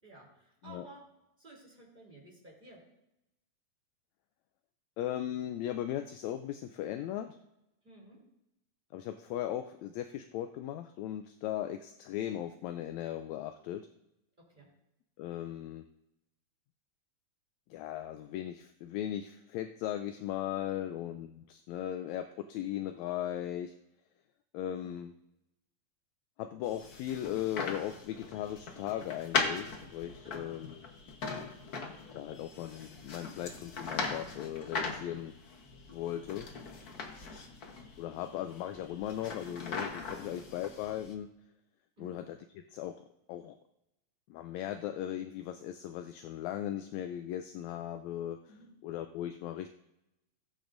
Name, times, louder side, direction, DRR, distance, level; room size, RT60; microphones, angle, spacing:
voice 1, 0.0-1.0 1.4-2.8 7.8-8.2 14.4-14.7 20.8-20.9 24.7-24.9 30.2-30.5 36.9-37.4 40.1-40.3 42.0-42.1 48.5-48.7, right 2 dB, 15° right, -4 dB, 3.5 m, -55 dB
voice 2, 5.0-7.4 8.9-13.9 15.2-15.8 17.7-23.7 24.5-25.1 26.4-30.7 32.1-35.3 35.9-36.5 38.0-41.3 42.0-42.4 42.7-43.0 43.3-43.6 44.3-48.4 48.8-49.7, left 11 dB, 80° left, 8 dB, 1.8 m, -37 dB
sound 1, 26.6-41.1, left 4 dB, 55° left, 1.0 m, -40 dB
17.0 x 8.9 x 2.6 m, 0.87 s
omnidirectional pair, 3.4 m